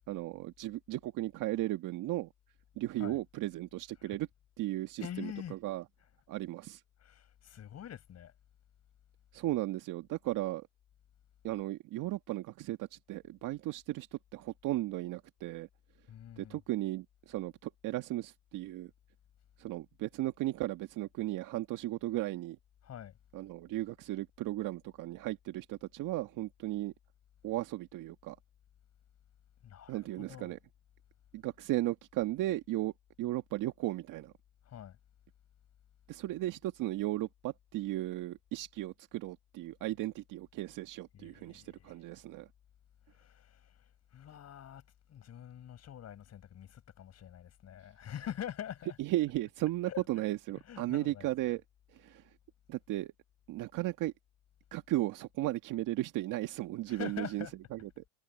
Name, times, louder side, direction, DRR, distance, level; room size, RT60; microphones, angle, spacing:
voice 1, 0.1-2.3 2.8-4.3 4.6-5.8 6.3-6.8 9.3-10.7 11.4-15.7 16.4-18.9 19.6-22.6 23.3-26.9 27.4-28.4 29.9-30.6 31.3-32.9 33.2-34.3 36.1-42.5 49.0-51.6 51.9-52.2 52.7-53.1 53.5-54.1 54.7-57.5 57.7-58.0, right 16 dB, 55° right, 1.7 m, -35 dB
voice 2, 5.0-5.6 6.0-6.1 7.0-8.3 16.1-16.6 22.8-23.1 29.6-30.5 34.6-35.0 41.1-42.0 43.1-43.7 44.1-44.8 45.1-49.0 49.8-50.3 50.6-51.3 56.9-57.6, left 10 dB, 40° left, 7.8 m, -45 dB
supercardioid pair, 100°, 39 cm